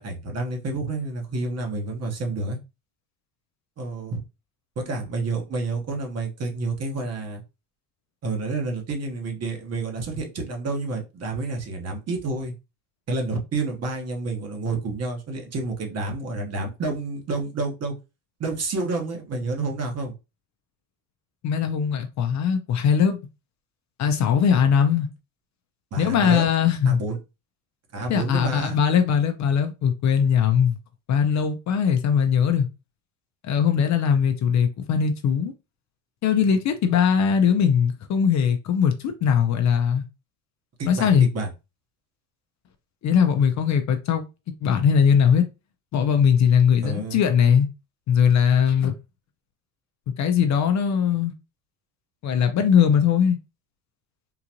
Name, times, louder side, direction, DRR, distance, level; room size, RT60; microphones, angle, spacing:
voice 1, 0.0-2.6 3.8-4.2 4.8-7.4 8.2-12.5 13.1-17.9 18.4-20.1 25.9-26.5 26.8-27.2 27.9-28.8 40.8-41.5 46.8-47.2, right 3 dB, 35° right, 1.1 m, -29 dB
voice 2, 21.4-23.2 24.0-25.1 26.0-27.0 28.1-30.8 31.1-32.7 33.4-35.5 36.2-40.0 40.9-41.3 43.0-44.2 44.6-45.4 45.9-47.7 48.1-48.9 50.2-51.3 52.2-53.4, left 7 dB, 45° left, 0.5 m, -20 dB
3.8 x 2.4 x 2.9 m
supercardioid pair, 110°, 42 cm